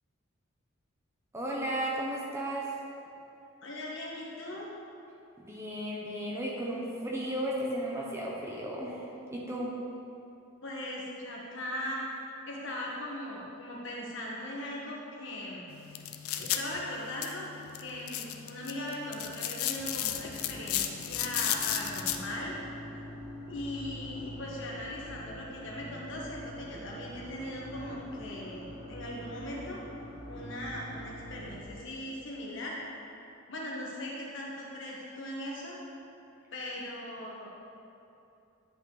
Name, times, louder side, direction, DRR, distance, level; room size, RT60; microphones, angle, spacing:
voice 1, 1.3-2.7 5.4-9.0 9.3-9.8, right 1 dB, 15° right, -4 dB, 0.8 m, -34 dB
voice 2, 3.6-4.7 10.6-12.0 12.5-15.7 16.4-17.5 17.8-22.5 23.5-29.8 30.2-32.8 33.5-35.8 36.5-37.5, left 1 dB, 60° left, -3 dB, 1.4 m, -39 dB
sound 1, 15.7-22.2, left 11 dB, 80° left, 0.5 m, -35 dB
sound 2, 19.7-31.6, equal, 40° left, 1.8 m, -45 dB
9.9 x 5.4 x 4.0 m, 2.8 s
head